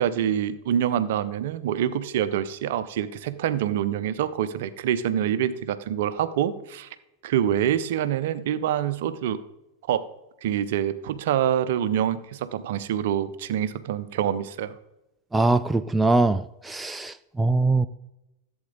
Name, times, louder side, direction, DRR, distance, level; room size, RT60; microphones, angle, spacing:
voice 1, 0.0-6.9 7.2-9.4 9.9-10.0 10.4-14.8, right 10 dB, 55° right, 13 dB, 0.7 m, -26 dB
voice 2, 15.3-17.9, right 2 dB, 10° right, 11 dB, 0.4 m, -22 dB
14.5 x 7.9 x 3.9 m, 0.93 s
figure-of-eight pair, 90°, 0 cm